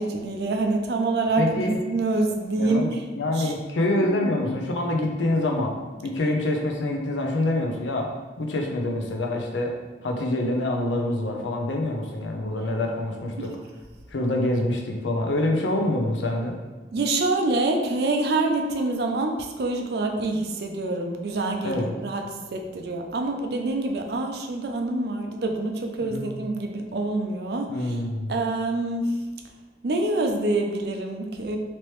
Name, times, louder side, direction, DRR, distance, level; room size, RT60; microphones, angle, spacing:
voice 1, 0.0-3.0 3.3-3.5 4.0-4.4 13.4-13.5 16.9-22.2 22.5-28.0 28.3-29.2 29.8-31.6, right 2 dB, 60° right, 4 dB, 0.4 m, -26 dB
voice 2, 1.4-1.7 2.6-2.9 3.2-5.7 6.0-8.1 8.4-9.7 10.0-13.5 14.1-16.5 21.6-21.9 26.0-26.2 27.7-28.4, left 1 dB, 90° left, 1 dB, 0.6 m, -26 dB
3.0 x 2.9 x 3.1 m, 1.3 s
head